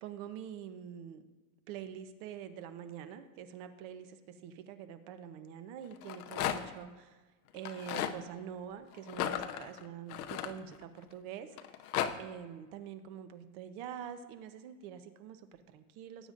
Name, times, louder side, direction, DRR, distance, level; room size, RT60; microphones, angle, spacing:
voice 1, 0.0-1.2 1.7-7.2 7.5-11.6 12.2-16.3, right 8 dB, 35° right, 9 dB, 0.8 m, -45 dB
Rattle, 5.9-6.8 7.6-8.2 9.1-11.0 11.6-12.1, left 10 dB, 90° left, 0.9 m, -35 dB
18.5 x 9.1 x 2.5 m, 1.2 s
supercardioid pair, 160°, 43 cm